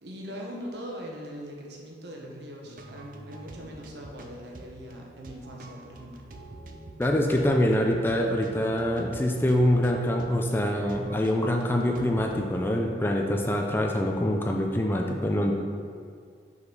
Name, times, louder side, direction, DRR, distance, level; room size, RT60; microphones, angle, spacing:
voice 1, 0.0-6.2, equal, 80° right, -1 dB, 1.1 m, -41 dB
sound 1, 2.6-12.3, right 1 dB, 50° right, 0.5 m, -46 dB
voice 2, 7.0-15.5, left 1 dB, 10° left, 1 dB, 0.4 m, -25 dB
5.6 x 4.0 x 5.2 m, 2.2 s
head